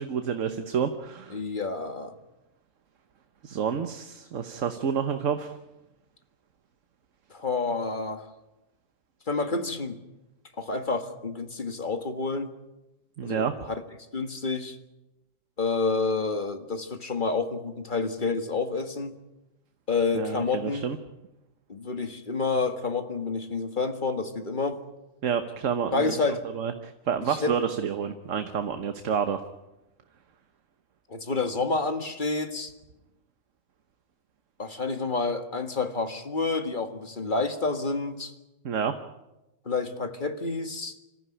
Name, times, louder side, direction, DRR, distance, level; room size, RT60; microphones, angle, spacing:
voice 1, 0.0-1.4 3.4-5.6 13.2-13.6 20.1-21.0 25.2-29.4 38.6-38.9, right 7 dB, 75° right, 8 dB, 1.5 m, -29 dB
voice 2, 1.3-2.2 7.3-8.3 9.3-10.0 10.6-12.5 13.2-13.7 14.1-14.8 15.6-19.2 19.9-20.9 21.7-24.8 25.9-26.4 27.3-27.5 31.1-32.7 34.6-38.3 39.7-41.0, left 3 dB, 40° left, 7 dB, 1.9 m, -29 dB
26.5 x 14.5 x 10.0 m, 0.99 s
omnidirectional pair, 1.3 m